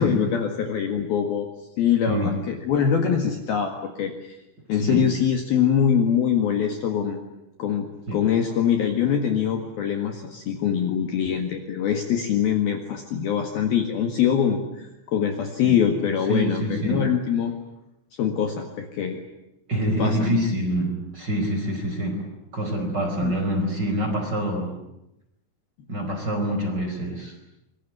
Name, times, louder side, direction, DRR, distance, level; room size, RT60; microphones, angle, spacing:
voice 1, 0.0-1.5 1.8-4.4 4.7-7.2 7.6-17.5 18.2-19.2 20.0-20.4 23.2-23.3, left 8 dB, 60° left, 4 dB, 3.1 m, -23 dB
voice 2, 4.7-5.0 8.1-8.2 15.6-15.8 16.3-17.1 19.7-22.2 22.5-24.7 25.9-27.4, equal, 20° right, 4 dB, 4.8 m, -26 dB
25.5 x 23.0 x 9.5 m, 0.89 s
omnidirectional pair, 6.0 m